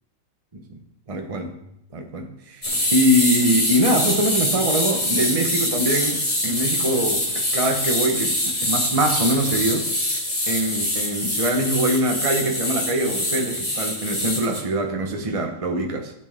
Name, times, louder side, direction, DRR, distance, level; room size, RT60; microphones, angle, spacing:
voice 1, 1.1-1.5 1.9-2.6 2.9-7.3 7.5-9.9 10.5-16.1, right 1 dB, 25° right, 3 dB, 0.9 m, -23 dB
sound 1, 2.6-14.6, left 1 dB, 20° left, 1.9 m, -24 dB
12.5 x 8.7 x 3.6 m, 0.79 s
omnidirectional pair, 2.2 m